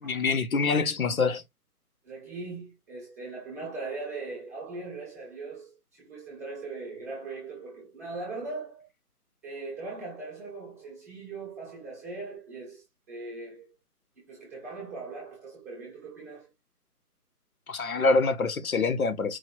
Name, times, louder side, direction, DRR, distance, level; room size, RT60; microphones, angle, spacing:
voice 1, 0.0-1.4 17.7-19.4, left 4 dB, 60° left, 0.9 m, -25 dB
voice 2, 2.0-8.9 9.4-13.8 14.2-16.5, right 3 dB, 10° right, 0.9 m, -40 dB
4.7 x 2.8 x 2.8 m
figure-of-eight pair, 155°, 47 cm